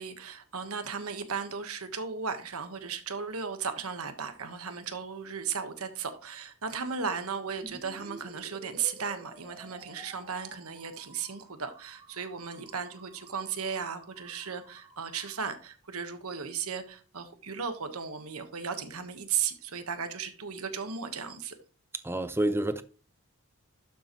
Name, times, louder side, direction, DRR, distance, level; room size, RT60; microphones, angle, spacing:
voice 1, 0.0-21.5, right 6 dB, 75° right, 1.3 m, -36 dB
sound 1, 7.6-15.5, right 2 dB, 25° right, 2.2 m, -52 dB
voice 2, 22.0-22.8, right 1 dB, 10° right, 0.6 m, -28 dB
12.0 x 7.1 x 3.1 m
head